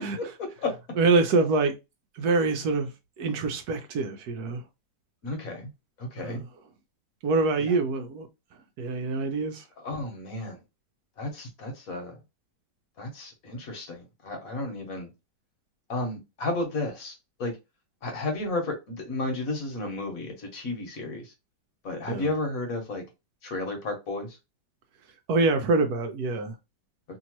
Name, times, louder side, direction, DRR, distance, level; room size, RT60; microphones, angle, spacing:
voice 1, 0.2-0.7 5.2-5.7 6.0-6.4 7.6-7.7 9.8-10.6 11.2-12.2 13.0-15.1 15.9-17.5 18.0-21.3 21.8-23.0 23.4-24.4, left 2 dB, 60° left, 1.3 m, -33 dB
voice 2, 1.0-1.7 2.2-2.9 3.2-4.6 6.2-6.5 7.2-8.3 8.8-9.6 22.1-22.3 25.3-26.5, right 3 dB, 75° right, 1.0 m, -25 dB
2.9 x 2.7 x 2.9 m
omnidirectional pair, 1.9 m